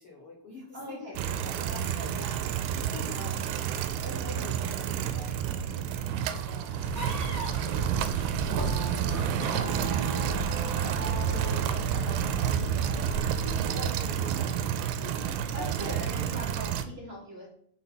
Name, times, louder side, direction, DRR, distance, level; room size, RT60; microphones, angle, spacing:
voice 1, 0.0-1.7 2.7-3.5 3.8-5.9 6.1-7.9 8.8-9.9 10.8-14.7 15.0-15.7, left 2 dB, 80° left, -3 dB, 1.3 m, -45 dB
voice 2, 0.7-1.1 1.7-3.4 9.5-10.3 15.5-17.5, equal, 45° right, -5 dB, 1.8 m, -42 dB
sound 1, 1.2-16.8, right 9 dB, 85° right, 2.6 m, -30 dB
sound 2, 6.4-13.2 13.5-15.3, right 3 dB, 60° right, 1.2 m, -38 dB
sound 3, 6.7-14.0, equal, 35° left, 2.9 m, -37 dB
6.6 x 4.1 x 5.9 m, 0.64 s
omnidirectional pair, 4.7 m